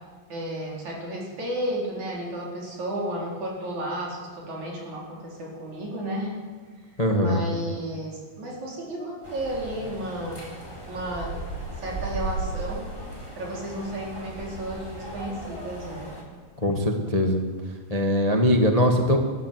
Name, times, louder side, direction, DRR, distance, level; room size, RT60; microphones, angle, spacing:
voice 1, 0.3-6.4 7.2-10.4 10.9-11.4 11.8-12.9 13.4-16.1, right 1 dB, 50° right, -3 dB, 5.6 m, -33 dB
voice 2, 7.0-7.4 16.6-17.5 17.9-19.2, left 1 dB, 75° left, 3 dB, 0.3 m, -21 dB
sound 1, 9.2-16.2, right 2 dB, 10° right, 3.9 m, -36 dB
22.0 x 13.0 x 9.5 m, 1.5 s
omnidirectional pair, 4.2 m